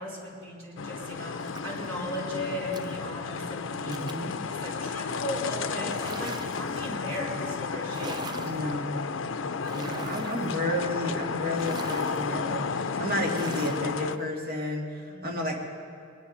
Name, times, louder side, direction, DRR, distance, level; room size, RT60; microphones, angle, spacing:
voice 1, 0.0-4.1 4.6-8.5 9.6-10.1 15.1-15.3, equal, 70° right, -4 dB, 4.5 m, -37 dB
sound 1, 0.8-14.2, left 5 dB, 65° left, 0.5 m, -33 dB
sound 2, 1.4-1.9 2.7-3.0 3.9-4.3 5.8-6.8 7.8-8.7 9.6-10.6 11.5-12.2 13.2-13.9, right 4 dB, 20° right, 0.3 m, -42 dB
voice 2, 3.9-4.4 8.4-9.2 9.7-15.6, left 1 dB, 45° right, -1 dB, 2.4 m, -31 dB
22.0 x 10.5 x 5.6 m, 2.6 s
head